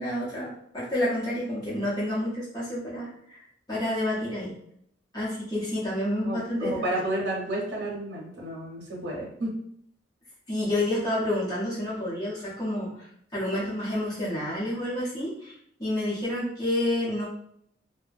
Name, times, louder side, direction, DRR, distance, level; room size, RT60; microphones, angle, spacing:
voice 1, 0.0-3.4 3.7-4.6 5.1-6.8 10.5-13.1 13.3-15.5 15.8-17.3, left 1 dB, 20° left, -9 dB, 0.8 m, -29 dB
voice 2, 6.2-9.5, right 1 dB, 65° right, -3 dB, 0.8 m, -31 dB
2.7 x 2.1 x 2.4 m, 0.69 s
head